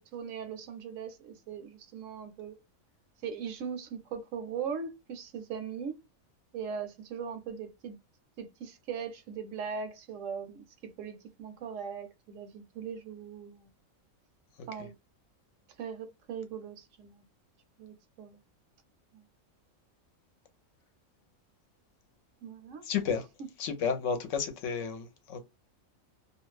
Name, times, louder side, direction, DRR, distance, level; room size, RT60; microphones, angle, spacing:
voice 1, 0.0-2.6 3.2-6.0 6.5-8.0 8.4-13.7 14.7-14.9 15.8-17.3 17.8-18.4 19.1-19.2 22.4-22.8, right 6 dB, 70° right, 0.9 m, -40 dB
voice 2, 22.8-23.3 23.6-25.4, left 6 dB, 70° left, 0.9 m, -32 dB
2.4 x 2.2 x 3.1 m
omnidirectional pair, 1.4 m